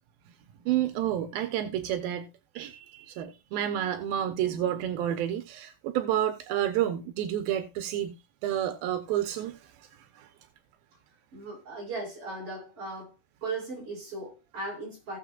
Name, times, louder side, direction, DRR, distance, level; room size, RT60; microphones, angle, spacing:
voice 1, 0.7-2.3 2.6-8.2 8.4-10.3, right 11 dB, 85° right, 2.7 m, -30 dB
voice 2, 11.3-13.1 13.4-15.2, right 3 dB, 40° right, 8.3 m, -37 dB
17.5 x 7.3 x 2.4 m
omnidirectional pair, 4.1 m